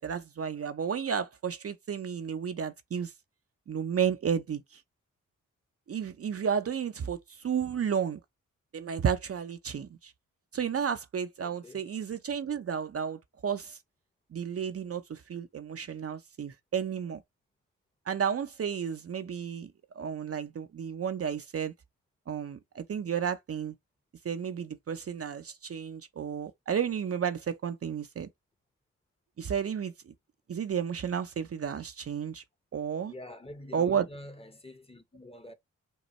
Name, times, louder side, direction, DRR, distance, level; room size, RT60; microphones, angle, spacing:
voice 1, 0.0-3.1 3.7-4.8 5.9-8.2 8.7-10.1 10.5-13.8 14.3-17.2 18.1-21.7 22.3-23.7 24.2-28.3 29.4-30.1 30.5-32.4 32.7-33.1 33.7-34.1, right 7 dB, 45° right, 0.6 m, -32 dB
voice 2, 11.4-11.8 33.1-35.5, left 1 dB, 15° left, 0.9 m, -47 dB
5.3 x 2.2 x 3.1 m
supercardioid pair, 45°, 33 cm